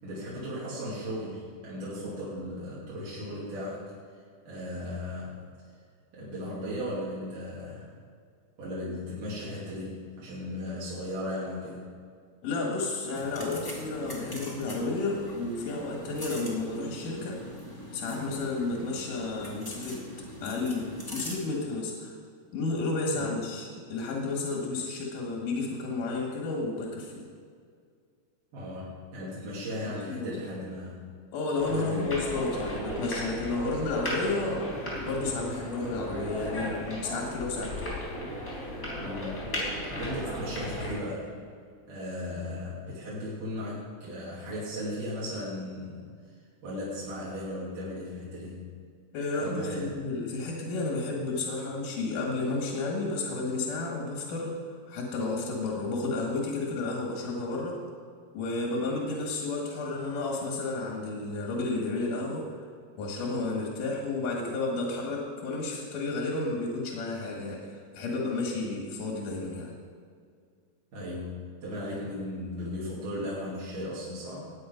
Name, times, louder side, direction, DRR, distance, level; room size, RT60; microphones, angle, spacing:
voice 1, 0.0-3.8 4.5-5.4 6.1-7.9 8.6-11.9 23.0-23.4 28.5-31.0 31.7-32.2 39.0-41.3 41.9-46.0 46.6-48.7 49.3-49.9 70.9-74.4, left 1 dB, 85° right, -8 dB, 4.4 m, -36 dB
voice 2, 12.4-17.4 17.9-20.0 20.4-22.2 22.5-27.3 29.8-30.5 31.3-34.6 35.0-37.9 49.1-54.5 54.9-57.8 58.3-62.4 63.0-67.6 67.9-69.7, left 3 dB, 80° left, -1 dB, 3.5 m, -32 dB
sound 1, 13.1-21.4, left 1 dB, 10° left, 1.7 m, -42 dB
sound 2, 31.6-40.9, equal, 25° left, 4.5 m, -35 dB
19.5 x 8.7 x 5.3 m, 2.1 s
omnidirectional pair, 3.6 m